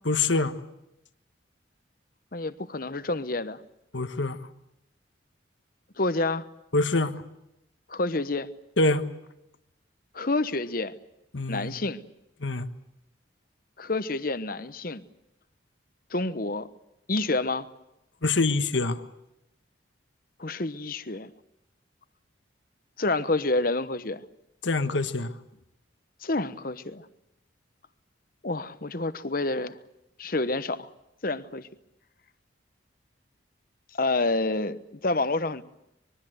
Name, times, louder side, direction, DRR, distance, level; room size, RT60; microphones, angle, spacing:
voice 1, 0.0-0.5 3.9-4.4 6.7-7.2 8.8-9.0 11.3-11.8 12.4-12.7 18.2-19.0 24.6-25.3, left 3 dB, 70° left, 10 dB, 1.4 m, -25 dB
voice 2, 2.3-3.6 6.0-6.5 7.9-8.5 10.1-10.9 11.5-12.0 13.8-15.0 16.1-16.7 17.1-17.7 20.4-21.3 23.0-24.2 26.2-27.1 28.4-29.8 30.2-30.9 31.2-31.7 33.9-35.6, left 2 dB, 45° left, 13 dB, 1.1 m, -28 dB
25.5 x 22.0 x 7.9 m, 0.86 s
head